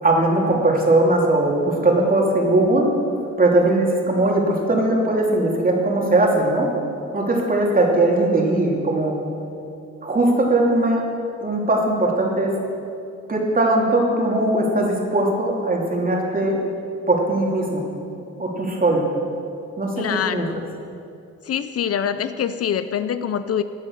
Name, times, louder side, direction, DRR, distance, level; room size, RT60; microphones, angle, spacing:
voice 1, 0.0-2.9 3.4-6.7 7.1-9.2 10.0-11.0 11.4-12.5 13.3-16.6 17.1-17.8 18.4-19.1 19.8-20.5, right 2 dB, 30° right, -1 dB, 3.1 m, -19 dB
voice 2, 19.9-20.6 21.4-23.6, left 8 dB, 50° left, 12 dB, 0.6 m, -24 dB
16.0 x 9.5 x 6.6 m, 2.7 s
cardioid pair, 90°, 30 cm